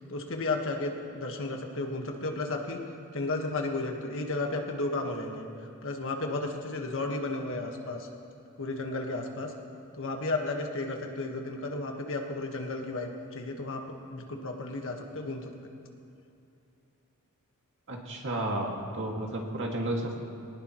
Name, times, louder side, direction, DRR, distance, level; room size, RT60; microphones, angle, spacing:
voice 1, 0.1-2.8 3.1-5.5 5.8-8.1 8.6-9.5 9.9-13.8 14.1-15.5, left 2 dB, 60° left, 2 dB, 1.6 m, -33 dB
voice 2, 17.9-20.2, right 1 dB, 60° right, -1 dB, 2.3 m, -32 dB
21.0 x 19.0 x 3.2 m, 2.6 s
head